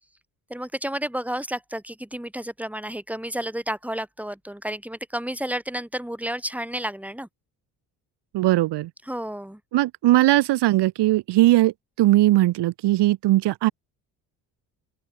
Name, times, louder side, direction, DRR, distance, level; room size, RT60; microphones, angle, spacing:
voice 1, 0.5-7.3 9.1-9.6, right 1 dB, 5° right, 7.0 m, -31 dB
voice 2, 8.3-8.9 9.7-13.7, right 16 dB, 75° right, 2.2 m, -19 dB
open air
supercardioid pair, 70°, 42 cm